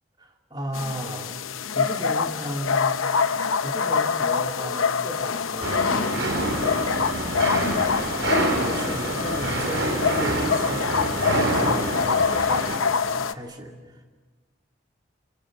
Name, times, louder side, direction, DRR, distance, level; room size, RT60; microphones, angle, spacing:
voice 1, 0.2-1.3 1.7-3.0 3.6-7.1 7.6-8.1 8.6-14.0, equal, 20° right, 2 dB, 2.7 m, -35 dB
sound 1, 0.7-13.3, left 6 dB, 85° left, 0.8 m, -25 dB
sound 2, 5.6-12.8, right 2 dB, 65° right, 4.8 m, -27 dB
30.0 x 26.5 x 6.5 m, 1.3 s
head